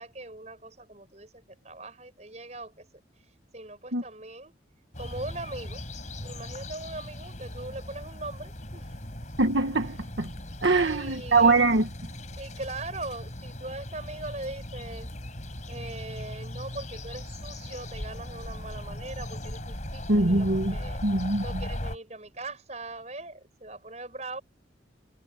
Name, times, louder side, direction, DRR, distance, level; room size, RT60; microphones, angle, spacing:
voice 1, 0.0-2.9 3.5-4.5 5.0-5.8 6.2-9.0 9.8-9.9 10.4-10.5 10.7-11.6 12.4-15.1 15.7-21.0 21.4-24.4, right 2 dB, 35° right, 6.6 m, -40 dB
sound 1, 4.9-22.0, left 1 dB, 40° left, 5.4 m, -38 dB
voice 2, 9.4-10.3 10.6-11.9 20.1-20.7 21.0-21.4, right 3 dB, 70° right, 1.5 m, -23 dB
head